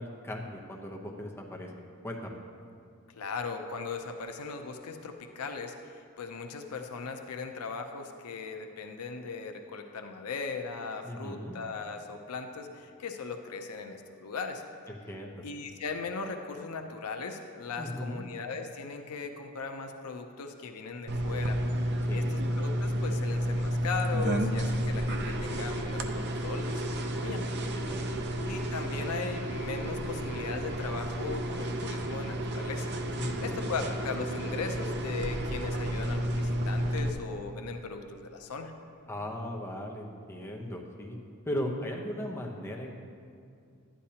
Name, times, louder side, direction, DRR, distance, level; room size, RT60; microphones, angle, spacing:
voice 1, 0.0-1.7 2.0-2.4 11.0-11.6 14.9-15.4 17.8-18.3 22.1-22.4 27.7-28.0 33.2-33.6 39.1-41.2 41.4-43.0, left 1 dB, 10° left, 0 dB, 0.8 m, -37 dB
voice 2, 3.1-14.6 15.4-21.6 22.1-27.4 28.4-38.7, left 4 dB, 85° left, 5 dB, 0.6 m, -38 dB
sound 1, 21.1-37.1, right 1 dB, 50° right, 0.6 m, -31 dB
12.0 x 10.0 x 2.9 m, 2.4 s
head